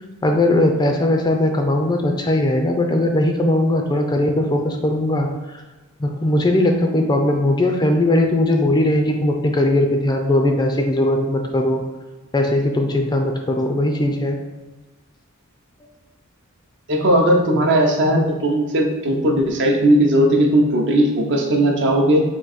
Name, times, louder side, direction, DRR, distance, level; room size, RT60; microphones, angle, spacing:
voice 1, 0.2-5.6 6.0-11.8 12.3-14.4, left 1 dB, 20° left, 3 dB, 0.4 m, -19 dB
voice 2, 16.9-22.2, right 1 dB, 55° right, 2 dB, 0.7 m, -17 dB
3.7 x 2.6 x 4.1 m, 1.2 s
head